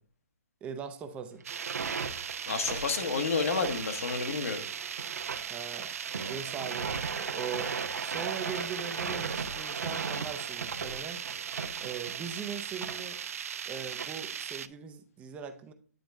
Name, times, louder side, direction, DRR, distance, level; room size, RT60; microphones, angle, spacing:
voice 1, 0.6-1.4 5.5-5.9 6.3-7.7 8.0-11.4 11.8-13.2 13.7-15.7, right 7 dB, 15° right, 0.6 m, -40 dB
sound 1, 1.4-14.7, right 8 dB, 60° right, 0.4 m, -39 dB
sound 2, 1.4-14.1, right 5 dB, 80° right, 0.8 m, -38 dB
voice 2, 2.5-4.6, left 5 dB, 60° left, 1.1 m, -30 dB
9.1 x 3.9 x 3.4 m
hypercardioid pair, 145°, 9 cm